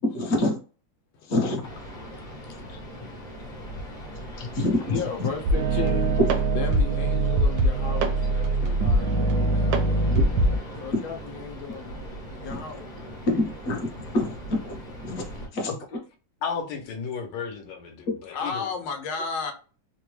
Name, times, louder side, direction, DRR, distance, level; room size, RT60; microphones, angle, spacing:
voice 1, 0.0-0.6 1.3-1.6 4.4-5.0 9.3-9.8 10.0-10.4 13.3-13.9 14.1-14.8 15.0-15.2 15.5-15.7, left 1 dB, 45° left, 1.0 m, -26 dB
voice 2, 1.1-1.6 2.0-4.6 4.9-6.2 6.5-10.2 10.8-12.0 12.3-12.9 18.3-19.5, left 5 dB, 90° left, 1.5 m, -35 dB
sound 1, 1.6-15.5, equal, 20° left, 1.0 m, -40 dB
sound 2, 5.5-10.6, right 2 dB, 75° right, 0.9 m, -22 dB
voice 3, 16.4-18.7, left 6 dB, 70° left, 1.4 m, -33 dB
3.6 x 2.2 x 3.0 m
omnidirectional pair, 2.2 m